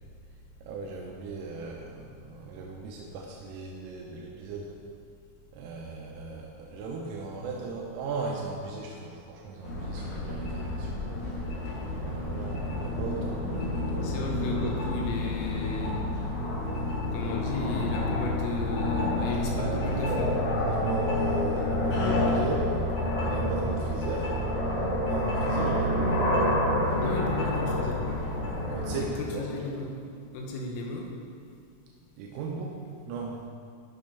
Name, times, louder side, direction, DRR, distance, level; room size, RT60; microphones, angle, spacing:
voice 1, 0.6-4.7 5.5-11.0 12.0-14.5 19.5-22.9 23.2-24.3 25.1-26.4 28.7-29.7 32.2-32.8 33.1-33.5, right 3 dB, 85° right, -1 dB, 3.4 m, -36 dB
sound 1, 9.6-29.0, left 1 dB, 65° left, 2.0 m, -29 dB
voice 2, 14.0-16.0 17.1-20.3 27.0-28.0 29.2-29.9 30.3-31.1, left 3 dB, 85° left, 0 dB, 3.5 m, -35 dB
13.5 x 6.2 x 3.4 m, 2.3 s
omnidirectional pair, 5.9 m